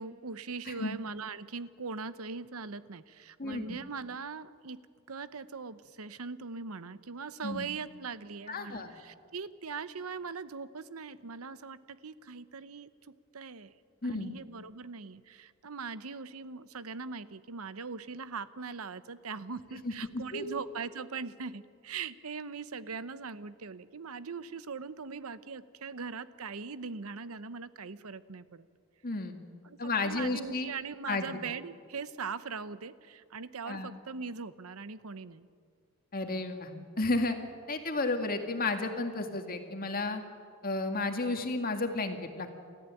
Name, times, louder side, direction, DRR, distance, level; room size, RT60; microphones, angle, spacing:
voice 1, 0.0-4.8 5.1-13.7 14.0-28.7 29.6-35.5, right 5 dB, 80° right, 14 dB, 0.9 m, -41 dB
voice 2, 3.4-3.8 7.4-7.7 8.5-8.9 14.0-14.3 19.8-20.5 29.0-29.4 29.8-30.7 31.1-31.2 33.6-33.9 36.1-36.7 37.0-37.4 37.7-40.2 40.6-42.5, left 2 dB, 40° left, 5 dB, 2.1 m, -32 dB
29.5 x 14.0 x 9.1 m, 2.2 s
head